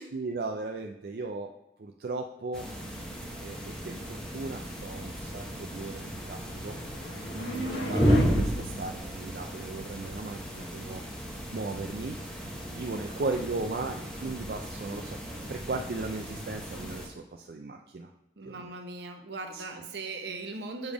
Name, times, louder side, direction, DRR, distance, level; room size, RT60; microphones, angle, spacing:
voice 1, 0.1-1.5 1.8-2.7 3.4-6.8 7.9-11.0 11.5-12.5 12.7-15.2 15.5-18.1 18.5-18.7 19.5-19.6, right 3 dB, 55° right, 3 dB, 0.4 m, -37 dB
sound 1, 2.5-17.1, equal, 5° left, 0.9 m, -33 dB
sound 2, 6.3-8.3, left 1 dB, 75° left, 0.9 m, -37 dB
voice 2, 7.3-8.0 18.4-20.9, right 3 dB, 70° right, 5 dB, 0.8 m, -38 dB
7.1 x 3.4 x 5.0 m, 0.90 s
head